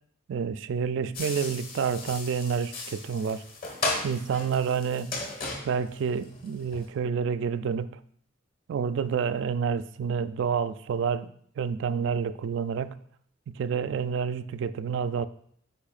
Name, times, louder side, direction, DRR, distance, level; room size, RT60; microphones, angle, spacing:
voice 1, 0.3-3.4 4.0-5.1 5.6-8.0 8.7-13.0 13.5-15.3, right 6 dB, 60° right, 14 dB, 0.3 m, -29 dB
sound 1, 1.1-6.9, left 3 dB, 45° left, 1.4 m, -36 dB
8.6 x 5.0 x 2.4 m, 0.63 s
head